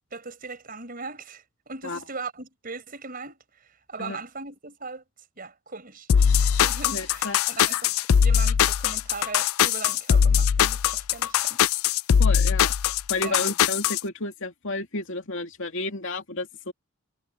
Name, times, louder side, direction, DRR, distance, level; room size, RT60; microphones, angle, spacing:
voice 1, 0.1-5.0 5.4-6.1 6.4-11.7 13.2-13.5, right 4 dB, 45° right, 4.8 m, -39 dB
sound 1, 6.1-14.0, left 8 dB, 85° left, 0.4 m, -21 dB
voice 2, 6.9-7.4 12.2-12.7 13.1-16.7, left 2 dB, 65° left, 2.7 m, -31 dB
head